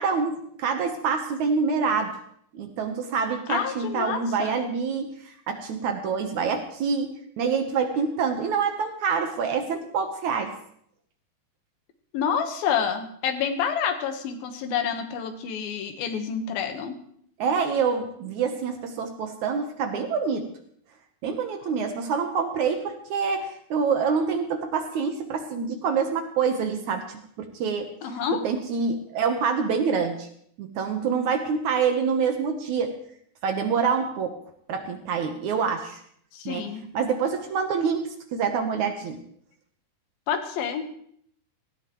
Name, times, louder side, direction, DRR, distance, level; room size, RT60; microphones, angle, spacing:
voice 1, 0.0-2.2 2.5-10.5 17.4-20.5 21.2-27.9 28.4-30.3 30.6-32.9 33.4-34.4 34.7-36.0 36.5-36.7 36.9-39.2, right 5 dB, 65° right, 5 dB, 2.1 m, -26 dB
voice 2, 3.5-4.6 12.1-17.0 28.0-28.4 36.3-36.8 40.3-40.9, left 7 dB, 80° left, 6 dB, 3.1 m, -28 dB
18.0 x 16.0 x 3.1 m, 0.67 s
omnidirectional pair, 4.2 m